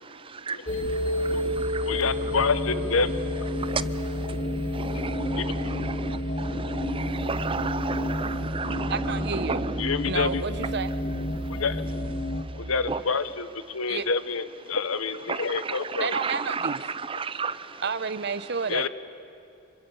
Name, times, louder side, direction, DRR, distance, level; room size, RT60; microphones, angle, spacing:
sound 1, 0.7-12.4, left 1 dB, 35° left, 2.1 m, -30 dB
voice 1, 0.9-1.9 3.6-4.1 4.7-9.8 12.9-13.0 15.3-17.8, right 4 dB, 25° right, 0.6 m, -33 dB
voice 2, 1.9-3.3 4.9-5.0 5.4-5.7 9.8-10.4 11.5-11.8 12.6-16.1 18.7-18.9, left 4 dB, 85° left, 1.1 m, -28 dB
voice 3, 8.9-9.7 10.1-10.9 13.9-14.1 16.0-16.9 17.8-18.9, right 5 dB, 55° right, 0.9 m, -30 dB
26.0 x 24.5 x 7.1 m
head